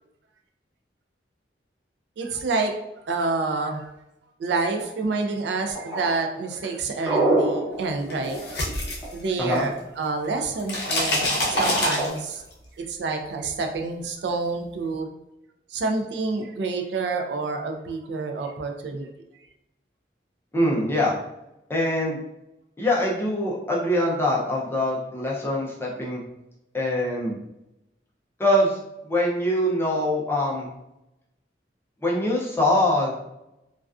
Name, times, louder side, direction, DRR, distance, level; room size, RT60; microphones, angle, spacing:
voice 1, 2.2-2.8 3.0-3.9 4.4-8.4 9.1-12.4 12.8-15.1 15.7-19.1, right 3 dB, 75° right, 4 dB, 0.3 m, -28 dB
sound 1, 5.8-9.4 11.5-12.1, right 2 dB, 5° right, 0.8 m, -25 dB
sound 2, 8.1-9.8 10.1-12.5, left 1 dB, 65° left, 0.7 m, -26 dB
voice 2, 20.5-21.2 21.7-22.2 22.8-26.2 26.7-27.4 28.4-28.8 29.0-30.7 32.0-33.2, left 1 dB, 15° left, -3 dB, 0.4 m, -23 dB
2.3 x 2.3 x 2.3 m, 0.89 s
head